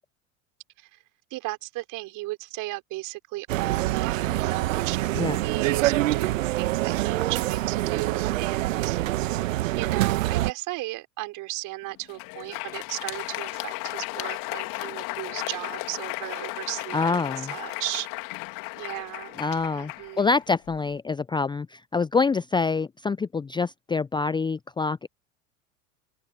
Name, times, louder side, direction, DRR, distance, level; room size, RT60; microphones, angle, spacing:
voice 1, 1.3-9.5 9.8-18.1 18.8-20.3, right 19 dB, 50° right, 5.8 m, -35 dB
sound 1, 3.5-10.5, right 16 dB, 70° right, 1.5 m, -25 dB
Crowd, 12.0-20.9, left 25 dB, 55° left, 3.1 m, -35 dB
voice 2, 16.9-17.5 19.4-19.9 20.2-25.1, left 4 dB, 10° left, 0.6 m, -26 dB
open air
figure-of-eight pair, 80°, 41 cm